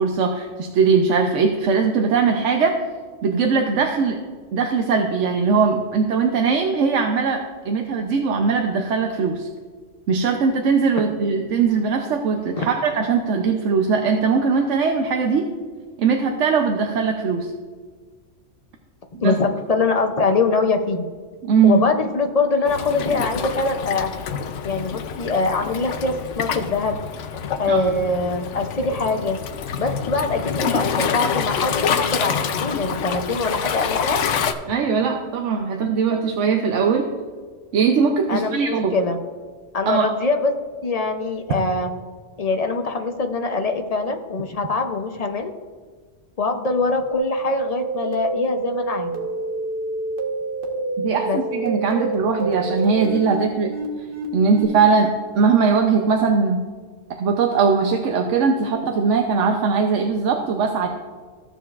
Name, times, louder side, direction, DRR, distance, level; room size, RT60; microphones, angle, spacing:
voice 1, 0.0-2.8 3.2-4.2 4.5-9.5 10.1-15.5 16.0-17.5 19.2-19.4 21.4-21.8 27.7-27.9 34.7-37.1 37.7-39.0 39.9-40.1 51.0-53.7 54.3-56.6 57.2-60.9, right 5 dB, 75° right, 3 dB, 1.0 m, -20 dB
voice 2, 19.2-21.1 21.6-24.1 24.6-26.9 27.6-29.4 29.8-34.3 38.3-39.2 39.7-40.5 40.8-41.9 42.4-45.5 46.4-49.2 51.2-51.4, left 3 dB, 45° left, 5 dB, 0.5 m, -23 dB
Waves surf, 22.7-34.5, left 7 dB, 70° left, 0.9 m, -27 dB
sound 1, 47.1-54.6, right 3 dB, 45° right, 1.3 m, -28 dB
15.0 x 7.0 x 2.4 m, 1.5 s
omnidirectional pair, 1.3 m